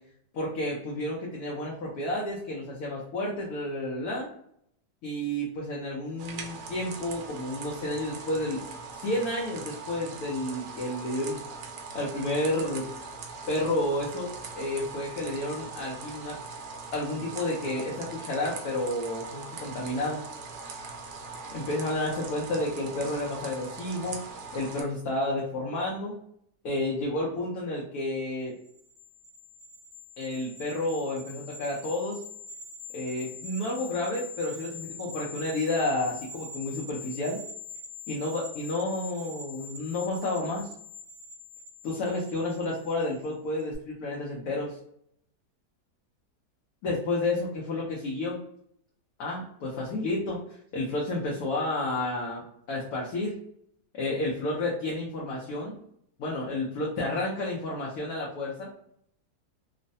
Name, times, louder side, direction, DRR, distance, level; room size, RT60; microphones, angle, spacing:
voice 1, 0.3-4.3 5.0-8.6 8.9-11.4 11.9-12.9 13.5-14.3 14.6-16.4 16.9-20.2 21.5-24.2 24.5-26.2 26.6-28.5 30.2-32.2 32.9-37.4 38.1-40.7 41.8-44.7 46.8-48.4 49.2-50.4 50.7-53.4 53.9-55.8 56.2-58.7, left 1 dB, 70° left, -4 dB, 1.1 m, -31 dB
sound 1, 6.2-24.8, right 4 dB, 65° right, 0.9 m, -41 dB
sound 2, 28.6-43.3 43.6-43.8, left 4 dB, 40° right, 1.2 m, -44 dB
3.1 x 2.1 x 2.6 m, 0.70 s
omnidirectional pair, 1.8 m